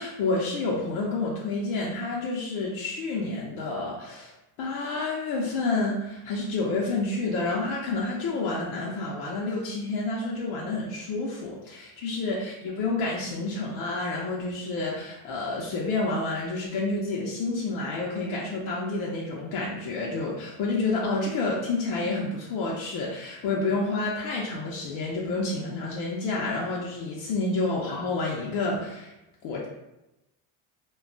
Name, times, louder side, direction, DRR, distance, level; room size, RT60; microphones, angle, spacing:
voice 1, 0.0-4.3 4.6-29.1 29.4-29.7, left 3 dB, 70° left, -3 dB, 0.7 m, -29 dB
2.3 x 2.2 x 3.7 m, 0.96 s
cardioid pair, 120°, 49 cm